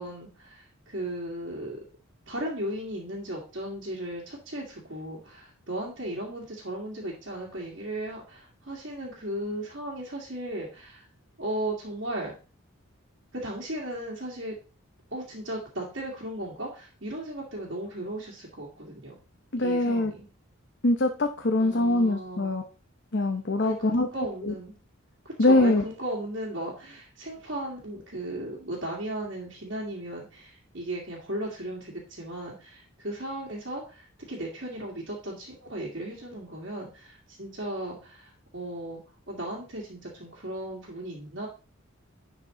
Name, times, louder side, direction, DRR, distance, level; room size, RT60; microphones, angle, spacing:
voice 1, 0.0-1.8 2.3-11.1 11.4-12.3 13.3-14.6 15.1-19.1 19.6-20.3 21.6-22.6 23.6-24.7 25.2-39.0 39.3-41.5, right 1 dB, 55° right, -4 dB, 2.1 m, -36 dB
voice 2, 19.5-20.1 20.8-22.6 23.1-24.1 24.4-24.5 25.4-25.8, left 2 dB, 50° left, 4 dB, 0.8 m, -23 dB
10.5 x 4.8 x 3.8 m, 0.34 s
head